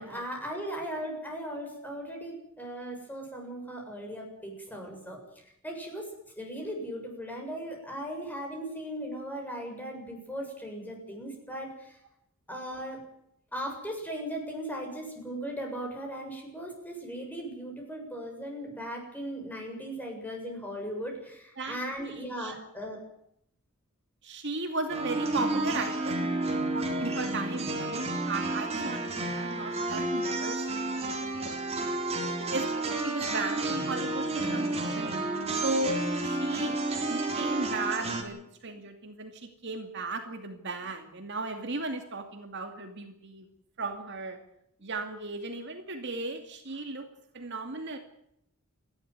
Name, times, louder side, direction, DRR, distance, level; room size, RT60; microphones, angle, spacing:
voice 1, 0.0-6.1 6.4-12.0 12.5-13.0 13.5-23.0 31.2-31.4, equal, 10° left, 1 dB, 7.4 m, -38 dB
voice 2, 21.6-22.6 24.2-32.7 33.0-35.1 35.6-36.8 37.1-43.5 43.8-44.4 44.8-47.1 47.3-48.0, right 2 dB, 55° right, 5 dB, 2.4 m, -36 dB
sound 1, 24.9-38.2, right 2 dB, 30° right, 4.1 m, -31 dB
29.0 x 12.5 x 9.5 m, 0.76 s
head